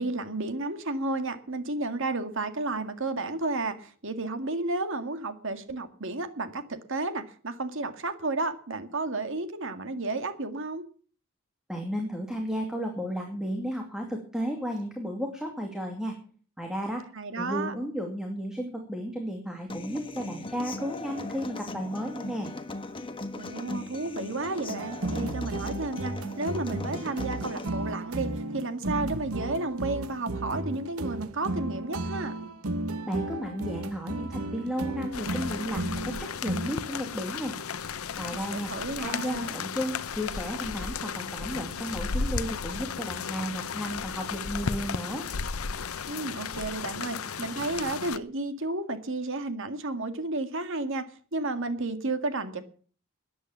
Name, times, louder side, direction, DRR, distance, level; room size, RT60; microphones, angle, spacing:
voice 1, 0.0-10.8 17.1-17.7 23.3-32.3 38.3-39.5 46.1-51.0 51.3-52.6, right 2 dB, 65° right, 9 dB, 1.9 m, -32 dB
voice 2, 11.7-16.2 16.6-17.1 17.4-22.5 33.1-37.5 38.2-38.7 39.0-45.3, equal, 5° right, 2 dB, 2.4 m, -33 dB
Human voice / Acoustic guitar, 19.7-27.7, left 2 dB, 25° left, 1.4 m, -38 dB
sound 1, 24.8-36.7, right 2 dB, 90° right, 1.2 m, -34 dB
sound 2, 35.1-48.2, left 5 dB, 80° left, 0.8 m, -34 dB
13.5 x 10.0 x 7.3 m, 0.43 s
head